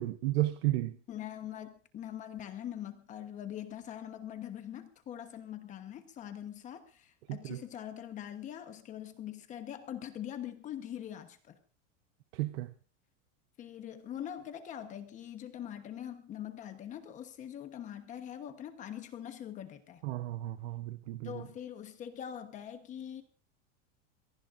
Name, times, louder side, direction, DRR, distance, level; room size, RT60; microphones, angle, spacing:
voice 1, 0.0-1.0 7.3-7.6 12.3-12.7 20.0-21.4, right 17 dB, 55° right, 0.8 m, -33 dB
voice 2, 1.1-11.6 13.6-20.0 21.2-23.2, left 10 dB, 20° left, 1.1 m, -43 dB
24.0 x 18.5 x 2.6 m
supercardioid pair, 180°, 37 cm